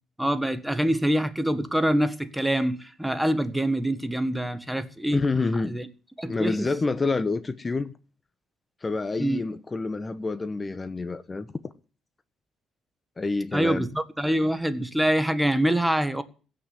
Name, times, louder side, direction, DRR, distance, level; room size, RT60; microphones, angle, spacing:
voice 1, 0.2-5.2 5.7-5.9 6.2-6.7 9.2-9.4 13.5-16.2, right 1 dB, 5° right, 1.6 m, -25 dB
voice 2, 5.1-5.8 6.3-7.9 8.8-11.5 13.2-13.9, left 3 dB, 30° left, 1.2 m, -27 dB
16.5 x 6.2 x 9.6 m
supercardioid pair, 70°, 0 cm